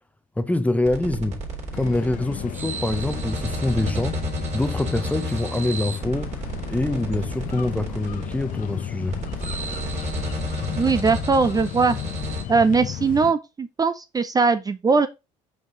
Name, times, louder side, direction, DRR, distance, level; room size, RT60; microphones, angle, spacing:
voice 1, 0.4-1.4 1.7-4.2 4.5-9.2, left 2 dB, 10° left, 0.7 m, -25 dB
sound 1, 0.8-12.4, right 1 dB, 45° right, 3.0 m, -31 dB
sound 2, 1.7-13.3, left 12 dB, 60° left, 0.7 m, -35 dB
voice 2, 10.8-12.0 12.5-15.1, right 4 dB, 25° right, 0.6 m, -20 dB
5.7 x 4.6 x 3.8 m
supercardioid pair, 80°, 16 cm